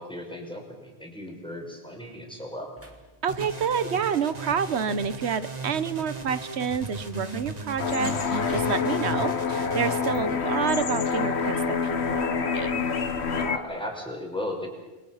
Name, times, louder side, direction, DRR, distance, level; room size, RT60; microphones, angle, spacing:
voice 1, 0.0-2.7 13.3-14.7, left 1 dB, 5° left, 1 dB, 4.9 m, -36 dB
sound 1, 1.8-11.6 12.2-12.3 12.7-12.8, equal, 10° right, 2.6 m, -49 dB
voice 2, 3.2-12.8, right 7 dB, 85° right, 14 dB, 1.3 m, -29 dB
sound 2, 3.3-10.1, right 2 dB, 40° right, 2.0 m, -37 dB
sound 3, 7.8-13.6, left 5 dB, 85° left, 1.5 m, -27 dB
29.0 x 22.0 x 5.7 m, 1.1 s
omnidirectional pair, 1.1 m